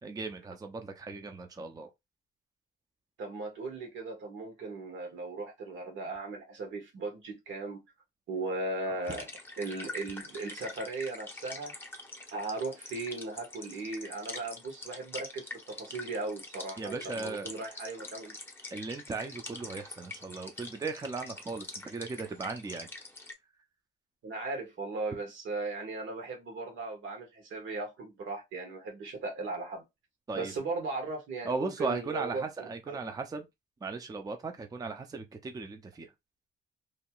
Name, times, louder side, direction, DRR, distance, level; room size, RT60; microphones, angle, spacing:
voice 1, 0.0-1.9 16.8-17.5 18.7-22.9 30.3-30.5 31.4-33.5 33.8-36.1, right 4 dB, 20° right, 0.5 m, -37 dB
voice 2, 3.2-7.8 8.3-9.3 9.6-11.7 12.3-18.4 24.2-29.8 30.3-33.0, right 3 dB, 75° right, 1.5 m, -37 dB
sound 1, 9.0-23.3, left 2 dB, 10° left, 0.9 m, -45 dB
3.0 x 2.7 x 2.3 m
cardioid pair, 90°, 20 cm